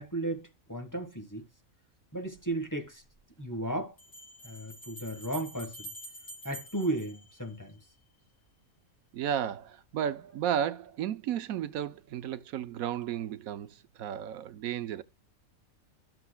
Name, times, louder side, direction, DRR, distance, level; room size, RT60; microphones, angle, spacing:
voice 1, 0.0-1.4 2.1-3.0 3.4-3.9 4.4-5.9 6.4-7.8, right 1 dB, 15° left, 1.4 m, -35 dB
sound 1, 2.4-2.5 4.0-7.9, right 1 dB, 60° left, 4.8 m, -47 dB
voice 2, 9.1-15.0, right 9 dB, 80° right, 1.1 m, -33 dB
13.5 x 6.9 x 2.2 m
omnidirectional pair, 1.4 m